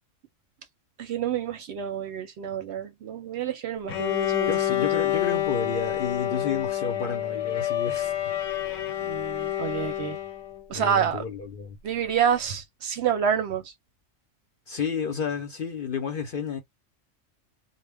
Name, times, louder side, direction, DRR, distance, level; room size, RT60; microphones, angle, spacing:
voice 1, 1.0-4.5 9.0-10.2 10.7-11.2 11.8-13.6, right 8 dB, 65° right, 0.7 m, -28 dB
Bowed string instrument, 3.9-10.6, left 12 dB, 85° left, 1.1 m, -28 dB
voice 2, 4.5-8.1 10.7-11.8 14.7-16.6, left 6 dB, 55° left, 0.6 m, -31 dB
2.1 x 2.1 x 3.3 m
omnidirectional pair, 1.3 m